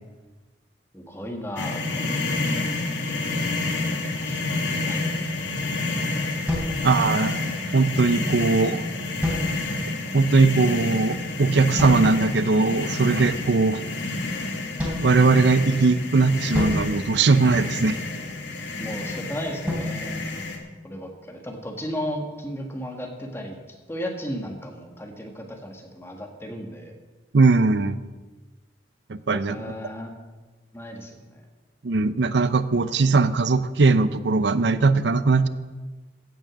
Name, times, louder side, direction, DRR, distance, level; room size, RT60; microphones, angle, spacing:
voice 1, 0.9-2.2 2.5-2.6 3.8-4.6 4.8-5.1 18.8-20.4 20.8-23.6 23.9-26.9 29.3-30.1 30.7-31.4, equal, 15° left, 2 dB, 1.6 m, -35 dB
sound 1, 1.6-20.6, left 2 dB, 85° left, 1.7 m, -29 dB
sound 2, 6.5-7.6 9.2-10.0 11.8-12.4 14.8-15.9 16.5-18.0 19.7-21.2, left 1 dB, 10° right, 3.2 m, -31 dB
voice 2, 6.8-7.4 7.7-8.8 10.1-13.8 15.0-18.0 27.3-28.0 29.1-29.6 31.8-35.5, right 3 dB, 70° right, 14 dB, 0.6 m, -20 dB
15.5 x 6.3 x 6.3 m, 1.3 s
head